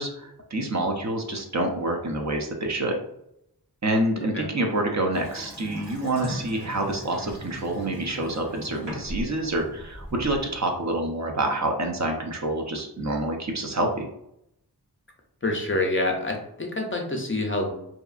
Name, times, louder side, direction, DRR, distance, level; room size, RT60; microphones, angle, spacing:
voice 1, 0.0-3.0 3.8-14.1, right 1 dB, 45° right, 2 dB, 0.4 m, -27 dB
Water tap faucet / Sink (filling or washing) / Bathtub (filling or washing), 5.1-10.6, equal, 85° right, 1.2 m, -38 dB
voice 2, 15.4-17.7, left 2 dB, 30° left, 1 dB, 0.4 m, -27 dB
2.7 x 2.3 x 2.3 m, 0.78 s
wide cardioid pair, 55°, 42 cm